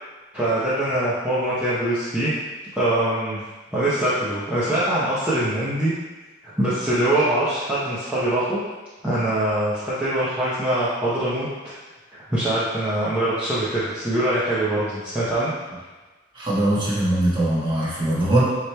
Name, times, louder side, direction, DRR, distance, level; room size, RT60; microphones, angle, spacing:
voice 1, 0.3-2.3 2.7-3.4 3.7-5.9 6.4-8.6 9.0-11.5 12.3-15.5, right 1 dB, 10° right, -11 dB, 0.7 m, -23 dB
voice 2, 16.3-18.4, right 1 dB, 25° right, -8 dB, 1.3 m, -21 dB
7.9 x 3.0 x 2.2 m, 1.3 s
head